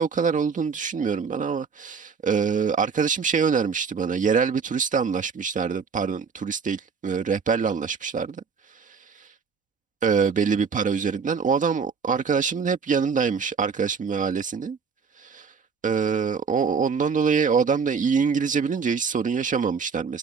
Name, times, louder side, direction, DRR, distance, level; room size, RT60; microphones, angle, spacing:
voice 1, 0.0-8.4 10.0-14.8 15.2-15.5 15.8-20.2, right 6 dB, 15° right, 1.9 m, -24 dB
cardioid pair, 170°, 46 cm